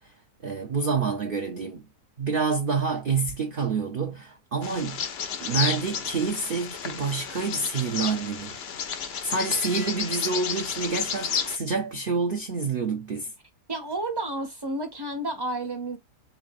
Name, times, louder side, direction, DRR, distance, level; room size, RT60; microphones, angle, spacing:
voice 1, 0.4-1.8 2.2-5.0 5.4-8.6 9.2-13.3, right 4 dB, 60° right, 0.6 m, -27 dB
Bird vocalization bird call bird song, 4.6-11.6, left 7 dB, 60° left, 0.6 m, -32 dB
voice 2, 13.7-16.0, right 2 dB, 20° right, 0.8 m, -31 dB
3.9 x 3.2 x 2.5 m
omnidirectional pair, 1.7 m